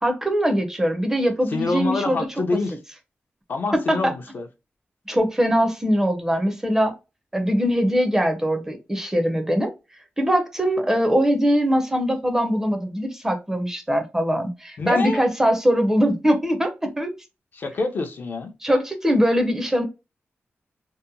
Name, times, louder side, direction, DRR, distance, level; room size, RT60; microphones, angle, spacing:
voice 1, 0.0-2.3 3.7-4.1 5.1-6.9 7.3-9.7 10.2-17.1 18.6-19.8, equal, 10° right, 0.5 m, -21 dB
voice 2, 1.5-2.8 3.5-4.5 14.8-15.2 17.5-18.5, left 3 dB, 55° left, 0.4 m, -26 dB
2.7 x 2.1 x 2.5 m
wide cardioid pair, 155°, 4 cm